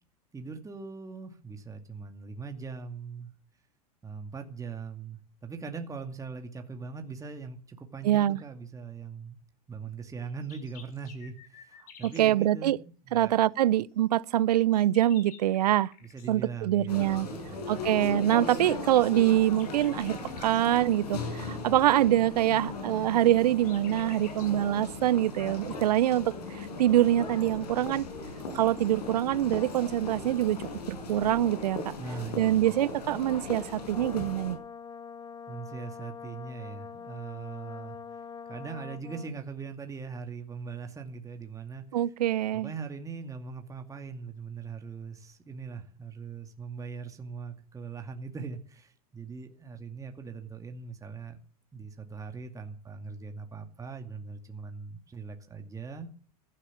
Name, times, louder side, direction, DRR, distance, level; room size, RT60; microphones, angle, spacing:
voice 1, 0.3-3.3 4.0-9.4 9.7-12.8 13.0-13.4 16.0-17.9 32.0-32.7 35.5-38.0 38.5-41.8 42.5-51.4 51.7-56.1, right 5 dB, 15° right, 2.3 m, -41 dB
voice 2, 8.0-8.4 12.0-12.8 13.1-15.9 16.3-17.3 17.7-28.1 28.5-30.6 30.9-31.9 32.4-34.6 41.9-42.7, right 12 dB, 80° right, 0.7 m, -25 dB
sound 1, 10.2-12.3 14.3-16.3 19.0-20.6 23.0-24.6, left 6 dB, 45° left, 6.3 m, -53 dB
sound 2, 16.9-34.5, left 3 dB, 85° left, 5.4 m, -38 dB
Brass instrument, 33.5-39.4, left 6 dB, 20° left, 1.3 m, -44 dB
15.5 x 12.0 x 7.3 m
hypercardioid pair, 105°, 20 cm